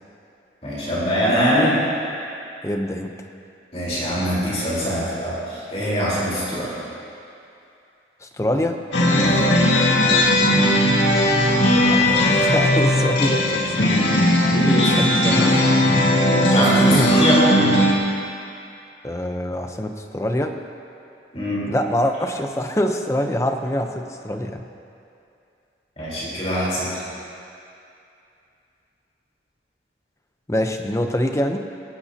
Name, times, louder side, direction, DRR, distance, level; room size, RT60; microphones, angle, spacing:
voice 1, 0.6-1.8 3.7-6.7 9.2-9.5 14.5-14.9 16.5-17.4 21.3-21.6 26.0-26.9, equal, 35° left, -8 dB, 4.1 m, -23 dB
voice 2, 2.6-3.1 8.2-8.8 11.8-14.6 14.9-16.1 16.5-17.1 19.0-20.6 21.7-24.6 30.5-31.6, left 1 dB, 15° left, 5 dB, 0.7 m, -25 dB
sound 1, 8.9-17.9, left 1 dB, 85° left, 1.9 m, -17 dB
19.5 x 17.5 x 2.9 m, 2.6 s
head